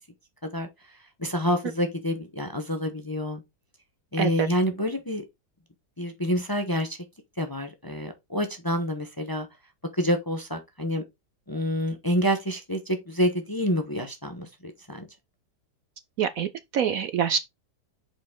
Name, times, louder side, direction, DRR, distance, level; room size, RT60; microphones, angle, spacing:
voice 1, 0.5-3.4 4.1-5.2 6.0-7.0 7.4-9.5 9.9-11.0 11.5-15.1, equal, 15° left, 0.8 m, -28 dB
voice 2, 16.2-17.4, right 8 dB, 65° right, 0.9 m, -25 dB
6.8 x 5.2 x 3.8 m
omnidirectional pair, 1.8 m